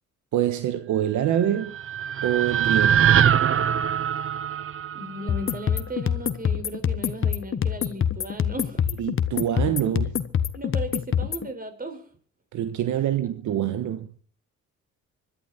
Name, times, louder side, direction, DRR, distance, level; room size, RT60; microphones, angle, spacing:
voice 1, 0.3-1.7 2.2-3.1 9.0-10.1 12.5-14.2, right 11 dB, 75° right, 1.4 m, -25 dB
sound 1, 1.4-5.6, right 9 dB, 45° right, 0.8 m, -23 dB
voice 2, 4.9-8.8 10.5-12.0, right 1 dB, 30° right, 5.0 m, -36 dB
sound 2, 5.3-11.5, left 8 dB, 45° left, 1.3 m, -26 dB
25.5 x 11.5 x 4.3 m
cardioid pair, 90°, 30 cm